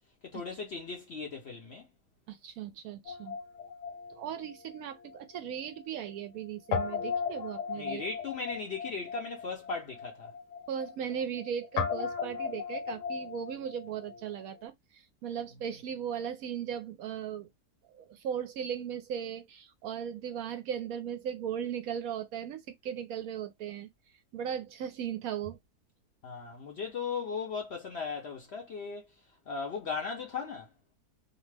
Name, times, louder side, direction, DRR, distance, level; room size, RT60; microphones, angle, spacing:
voice 1, 0.2-1.9 7.7-10.3 26.2-29.0 29.5-30.7, left 5 dB, 55° left, 0.7 m, -37 dB
voice 2, 2.3-3.4 4.1-8.0 10.7-17.5 17.9-23.9 24.3-25.6, right 8 dB, 70° right, 0.9 m, -37 dB
Guitar, 3.1-5.5 5.7-5.8 6.7-14.6, left 6 dB, 85° left, 1.3 m, -37 dB
2.8 x 2.0 x 3.2 m
omnidirectional pair, 1.7 m